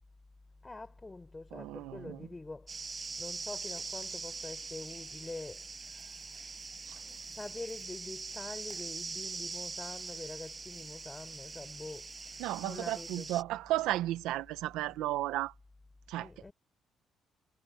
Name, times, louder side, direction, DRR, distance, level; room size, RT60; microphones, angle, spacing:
voice 1, 0.6-2.8 3.2-5.6 6.9-12.1 12.6-13.3 16.2-16.5, left 2 dB, 20° left, 4.1 m, -45 dB
voice 2, 1.5-2.2 6.9-7.0 12.4-15.5 16.1-16.3, right 15 dB, 85° right, 1.1 m, -34 dB
sound 1, 2.7-13.4, right 4 dB, 30° right, 6.6 m, -43 dB
supercardioid pair, 75°, 0 cm